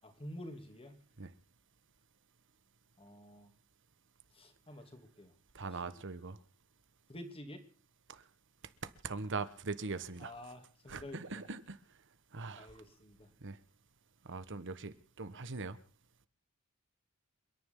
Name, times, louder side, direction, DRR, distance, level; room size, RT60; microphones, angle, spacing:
voice 1, 0.0-1.0 3.0-3.5 4.3-5.3 5.7-6.0 7.1-7.6 10.2-11.4 12.6-13.3, left 1 dB, 25° left, 2.9 m, -49 dB
voice 2, 5.5-6.4 8.1-8.2 8.8-10.3 10.9-11.8 12.3-12.7 13.4-13.6 14.2-15.8, right 4 dB, 55° right, 1.4 m, -41 dB
28.5 x 10.5 x 3.8 m
head